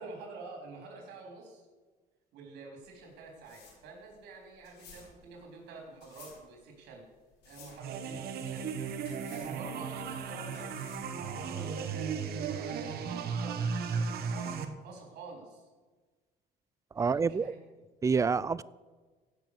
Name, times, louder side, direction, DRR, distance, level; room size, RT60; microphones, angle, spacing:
voice 1, 0.0-1.7 2.3-7.1 7.4-8.7 9.3-10.9 11.4-15.7 17.0-17.6, right 3 dB, 85° right, 3.8 m, -48 dB
sound 1, 2.8-11.2, left 5 dB, 80° left, 4.4 m, -57 dB
sound 2, 7.8-14.6, right 6 dB, 65° right, 1.2 m, -35 dB
voice 2, 16.9-17.5 18.0-18.6, right 5 dB, 20° right, 0.4 m, -27 dB
15.5 x 6.3 x 6.7 m
cardioid pair, 110°, 17 cm